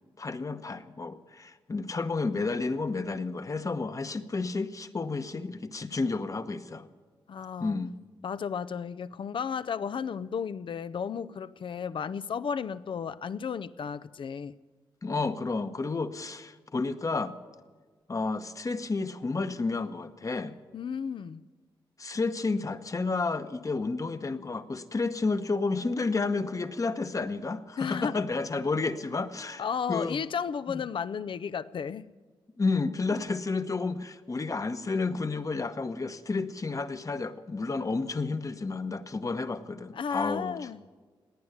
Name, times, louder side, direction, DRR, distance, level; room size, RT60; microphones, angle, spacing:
voice 1, 0.2-6.9 7.6-7.9 15.0-17.3 18.1-20.5 22.0-30.2 30.7-30.8 32.6-40.7, left 3 dB, 35° left, 1.0 m, -31 dB
voice 2, 7.3-7.8 8.2-14.5 20.7-21.4 27.8-28.2 29.6-32.1 33.1-33.2 39.9-40.8, left 6 dB, 60° left, 0.5 m, -33 dB
18.0 x 9.5 x 8.0 m
cardioid pair, 65°, 9 cm